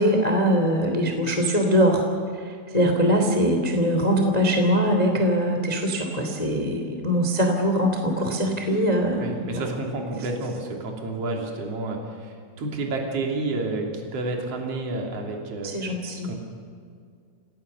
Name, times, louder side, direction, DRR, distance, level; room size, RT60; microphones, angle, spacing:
voice 1, 0.0-2.0 2.4-9.6 15.6-16.3, equal, 30° left, 4 dB, 0.6 m, -22 dB
voice 2, 9.2-15.8 16.2-16.4, right 2 dB, 35° right, 1 dB, 3.5 m, -30 dB
28.5 x 17.5 x 6.8 m, 2.2 s
omnidirectional pair, 5.8 m